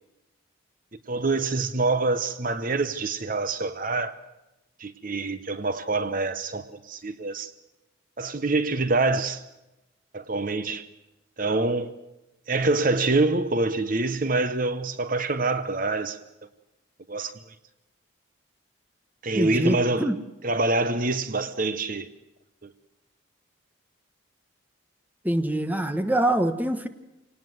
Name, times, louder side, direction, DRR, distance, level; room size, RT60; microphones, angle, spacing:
voice 1, 1.1-4.2 4.8-7.5 8.2-9.4 10.1-10.9 11.4-11.9 12.5-16.2 17.1-17.5 19.2-20.1 20.4-22.1 22.6-22.7, right 3 dB, 40° right, 0.9 m, -26 dB
voice 2, 19.3-20.2 25.2-26.9, right 1 dB, 10° right, 1.1 m, -24 dB
27.5 x 18.5 x 7.9 m
head